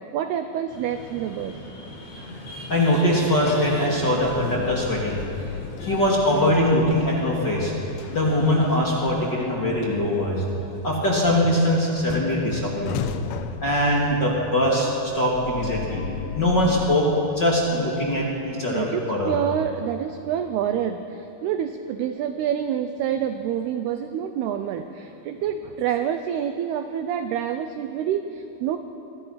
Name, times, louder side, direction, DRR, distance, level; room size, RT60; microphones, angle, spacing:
voice 1, 0.1-1.6 17.7-17.9 18.7-28.8, right 9 dB, 80° right, 8 dB, 2.3 m, -27 dB
sound 1, 0.7-9.0, right 1 dB, 65° left, 7.8 m, -39 dB
sound 2, 1.4-1.9 2.3-17.0, left 9 dB, 85° left, 3.4 m, -36 dB
voice 2, 2.7-5.2 5.8-7.7 8.1-10.4 10.8-13.0 13.6-16.0 16.3-17.1 17.3-19.3, left 1 dB, 30° left, -4 dB, 2.4 m, -22 dB
27.0 x 21.0 x 5.8 m, 2.9 s
omnidirectional pair, 5.5 m